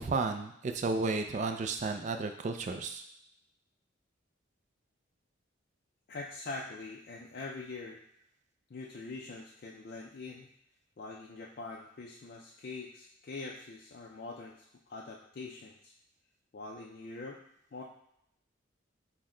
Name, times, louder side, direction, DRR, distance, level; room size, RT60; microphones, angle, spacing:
voice 1, 0.0-3.0, right 3 dB, 35° right, 6 dB, 0.3 m, -33 dB
voice 2, 6.1-8.0 8.7-10.5 11.0-15.9 16.5-17.4 17.7-17.8, left 3 dB, 45° left, -2 dB, 0.4 m, -44 dB
6.1 x 2.1 x 3.7 m, 0.77 s
head